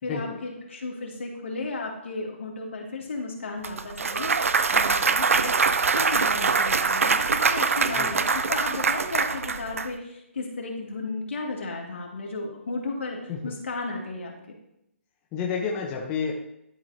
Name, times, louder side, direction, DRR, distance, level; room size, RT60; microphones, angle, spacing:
voice 1, 0.0-5.6 5.9-14.3, left 3 dB, 65° left, 0 dB, 2.0 m, -34 dB
Clapping / Cheering / Applause, 3.6-9.9, right 5 dB, 85° right, 0.5 m, -23 dB
voice 2, 15.3-16.3, left 6 dB, 15° left, -1 dB, 0.6 m, -30 dB
11.5 x 4.6 x 2.7 m, 0.81 s
hypercardioid pair, 165°, 7 cm